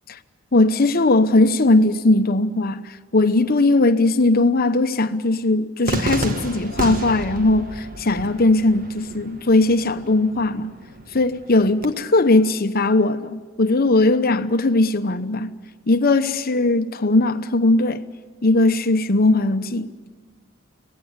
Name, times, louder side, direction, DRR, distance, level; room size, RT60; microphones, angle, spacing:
voice 1, 0.5-10.7 11.1-15.5 15.9-18.0 18.4-19.9, left 2 dB, 50° left, 0.9 m, -19 dB
Cheering / Fireworks, 5.9-11.9, right 1 dB, 45° right, 1.5 m, -31 dB
25.0 x 17.5 x 8.1 m
head